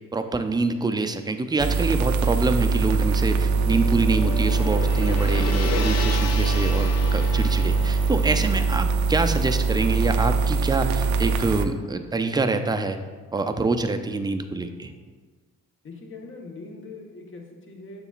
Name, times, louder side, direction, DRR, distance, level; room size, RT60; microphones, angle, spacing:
voice 1, 0.1-13.0 13.3-14.9, right 3 dB, 15° right, 7 dB, 0.4 m, -26 dB
sound 1, 1.6-11.6, right 4 dB, 75° right, 0.5 m, -22 dB
Gong, 3.2-11.5, left 5 dB, 60° left, 0.6 m, -34 dB
voice 2, 15.8-18.0, left 3 dB, 40° left, 1 dB, 1.2 m, -41 dB
6.9 x 6.9 x 2.4 m, 1.4 s
cardioid pair, 90°, 30 cm